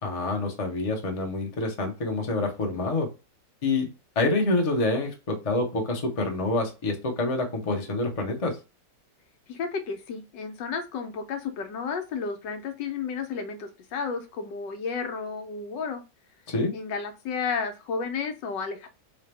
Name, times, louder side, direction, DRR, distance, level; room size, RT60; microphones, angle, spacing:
voice 1, 0.0-3.1 3.6-3.9 4.2-8.6 16.5-16.7, left 2 dB, 30° left, 2 dB, 0.7 m, -27 dB
voice 2, 9.5-16.0 16.7-18.9, left 5 dB, 90° left, 6 dB, 1.4 m, -32 dB
4.2 x 2.8 x 3.3 m, 0.29 s
omnidirectional pair, 1.9 m